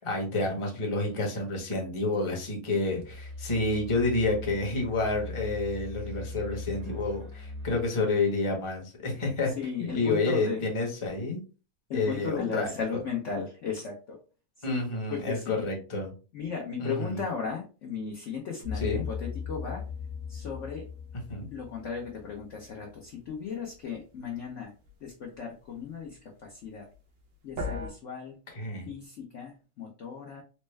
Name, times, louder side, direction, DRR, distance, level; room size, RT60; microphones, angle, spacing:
voice 1, 0.0-9.5 9.9-11.4 11.9-12.7 14.6-16.1 16.8-17.2 18.8-19.0 21.3-21.5 28.6-28.9, left 2 dB, 25° left, 0 dB, 0.8 m, -29 dB
sound 1, 2.9-7.9, left 2 dB, 65° right, 1.3 m, -40 dB
voice 2, 9.4-10.6 11.9-14.2 14.6-15.6 16.3-19.8 20.3-20.9 21.5-24.7 25.0-26.9 27.4-28.4 28.9-30.4, left 6 dB, 60° left, 0 dB, 0.8 m, -36 dB
sound 2, 18.6-22.8 27.6-27.9, left 5 dB, 85° right, 1.7 m, -37 dB
4.3 x 2.1 x 3.2 m, 0.34 s
omnidirectional pair, 1.9 m